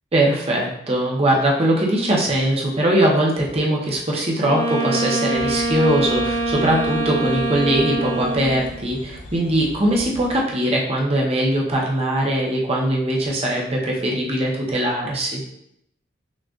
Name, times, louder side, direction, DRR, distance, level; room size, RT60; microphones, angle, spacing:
voice 1, 0.1-15.4, right 1 dB, 30° right, -2 dB, 0.8 m, -21 dB
Wind instrument woodwind instrument, 4.4-8.8, right 2 dB, 50° left, 1.2 m, -24 dB
sound 1, 5.3-10.4, left 1 dB, 75° left, 0.5 m, -39 dB
6.1 x 2.4 x 2.4 m, 0.77 s
head